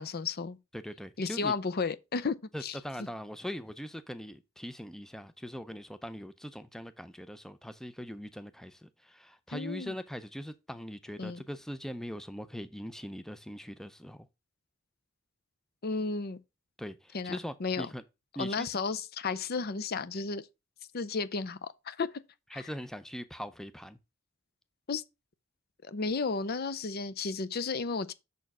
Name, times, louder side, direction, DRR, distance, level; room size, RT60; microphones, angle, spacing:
voice 1, 0.0-0.6 1.2-2.4 2.6-2.8 9.5-9.9 11.2-11.4 15.8-16.4 17.1-17.9 18.4-20.4 20.9-22.2 22.5-22.6 24.9-25.0 25.8-28.1, left 4 dB, 50° left, 0.6 m, -33 dB
voice 2, 0.7-1.6 2.5-14.3 16.8-18.0 18.4-18.7 22.5-24.0, equal, ahead, 0.5 m, -41 dB
6.8 x 4.4 x 6.0 m
head